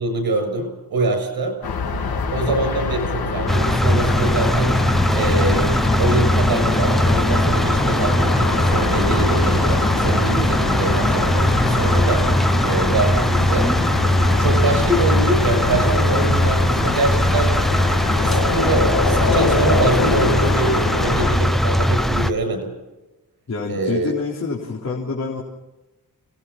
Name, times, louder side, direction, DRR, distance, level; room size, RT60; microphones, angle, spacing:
voice 1, 0.0-1.6 2.3-4.8 5.1-13.8 14.4-17.6 18.2-22.7 23.7-24.1, right 2 dB, 85° right, 7 dB, 7.1 m, -24 dB
sound 1, 1.6-21.4, left 4 dB, 85° left, 3.7 m, -24 dB
sound 2, 3.5-22.3, equal, ahead, 0.9 m, -19 dB
voice 2, 23.5-25.4, left 4 dB, 45° left, -3 dB, 3.9 m, -27 dB
28.5 x 19.5 x 5.9 m, 1.1 s
wide cardioid pair, 160°, 36 cm